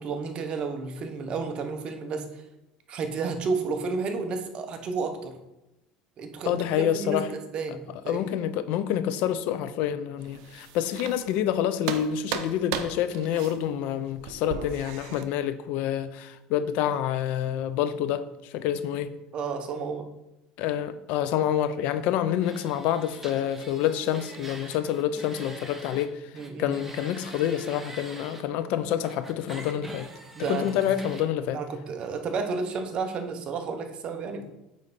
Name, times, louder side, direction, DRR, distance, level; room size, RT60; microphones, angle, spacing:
voice 1, 0.0-2.4 2.9-5.4 6.2-8.4 19.3-20.1 26.3-26.8 30.4-30.9 31.5-34.5, right 4 dB, 40° right, 6 dB, 0.8 m, -32 dB
voice 2, 6.5-7.3 8.1-18.2 18.5-19.1 20.6-26.1 26.6-30.1 30.5-31.6, left 10 dB, 65° left, 12 dB, 0.5 m, -27 dB
sound 1, 10.2-11.5 11.8-15.2, right 9 dB, 80° right, 0.6 m, -36 dB
sound 2, 22.4-26.1 26.3-28.4 29.0-31.3, right 2 dB, 10° right, 0.8 m, -44 dB
8.9 x 3.2 x 4.1 m, 0.96 s
cardioid pair, 130°, 3 cm